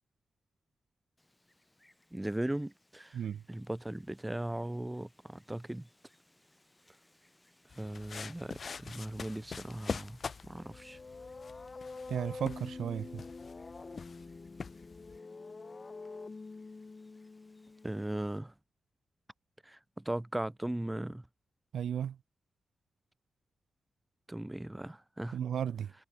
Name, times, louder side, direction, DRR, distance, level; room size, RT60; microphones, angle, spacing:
Wind, 1.2-18.4, left 1 dB, 10° left, 7.1 m, -68 dB
voice 1, 2.1-3.2 3.5-5.9 7.8-11.0 17.8-18.5 19.6-21.3 24.3-25.4, right 1 dB, 10° right, 0.8 m, -38 dB
voice 2, 3.1-3.4 12.1-13.2 21.7-22.2 25.3-25.9, right 9 dB, 85° right, 0.4 m, -34 dB
sound 1, 7.7-15.2, left 5 dB, 50° left, 0.5 m, -45 dB
sound 2, 10.5-18.3, left 3 dB, 35° left, 3.7 m, -47 dB
cardioid pair, 100°, 0 cm